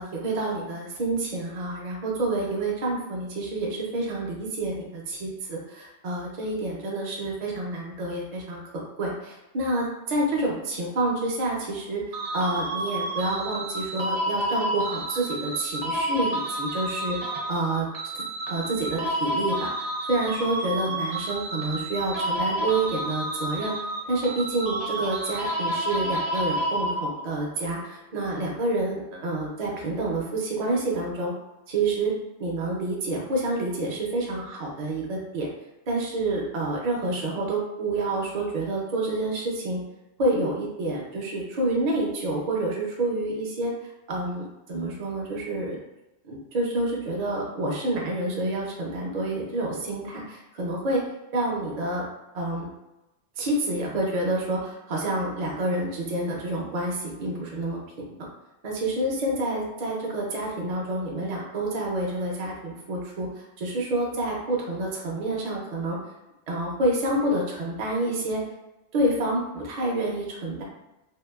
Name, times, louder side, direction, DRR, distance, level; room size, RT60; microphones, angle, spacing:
voice 1, 0.0-12.0 12.3-17.2 17.5-17.9 18.5-19.7 20.1-23.7 24.1-31.3 31.7-35.5 35.9-39.8 40.2-43.7 44.1-45.8 46.2-51.0 51.3-52.1 52.3-52.7 53.4-57.8 58.6-66.0 66.5-68.4 68.9-70.6, right 2 dB, 50° right, -3 dB, 0.5 m, -28 dB
sound 1, 12.1-27.4, right 1 dB, 85° right, 0.9 m, -30 dB
2.8 x 2.2 x 2.2 m, 0.98 s
omnidirectional pair, 1.2 m